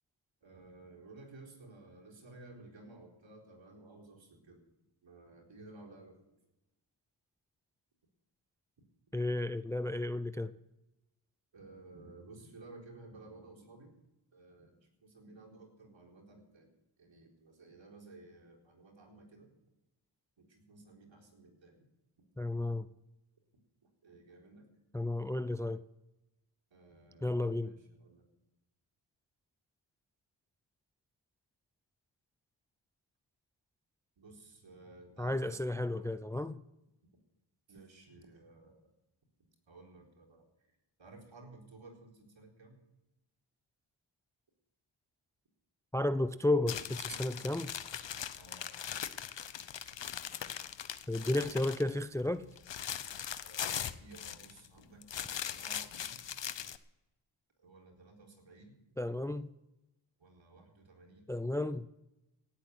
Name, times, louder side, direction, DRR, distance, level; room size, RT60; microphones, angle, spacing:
voice 1, 0.4-4.6 5.0-6.2 11.5-14.0 14.3-16.7 17.0-19.5 20.4-21.8 24.0-24.6 26.7-28.3 34.2-36.1 37.7-38.9 39.4-40.5 41.0-42.8 48.4-48.8 53.4-56.2 57.6-58.8 60.2-61.3, right 2 dB, 65° right, 4.3 m, -55 dB
voice 2, 9.1-10.5 22.4-22.9 24.9-25.8 27.2-27.7 35.2-36.6 45.9-47.7 51.1-52.4 59.0-59.5 61.3-61.9, left 1 dB, 5° left, 0.5 m, -33 dB
sound 1, 46.7-51.9 52.3-54.7 55.0-56.8, left 9 dB, 60° left, 0.9 m, -40 dB
17.5 x 8.6 x 7.9 m
cardioid pair, 75°, 49 cm